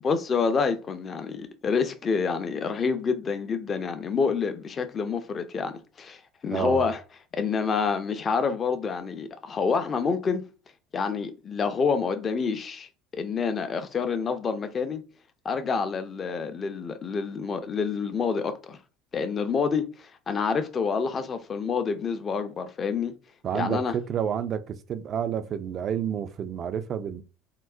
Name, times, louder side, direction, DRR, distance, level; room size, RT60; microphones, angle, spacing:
voice 1, 0.0-7.0 7.3-10.4 10.9-12.9 13.1-15.0 15.4-18.8 19.1-23.1 23.5-23.9, left 5 dB, 30° left, 0.4 m, -27 dB
voice 2, 6.5-6.9 23.4-27.2, right 8 dB, 40° right, 0.3 m, -30 dB
3.7 x 2.0 x 2.4 m
figure-of-eight pair, 65°, 0 cm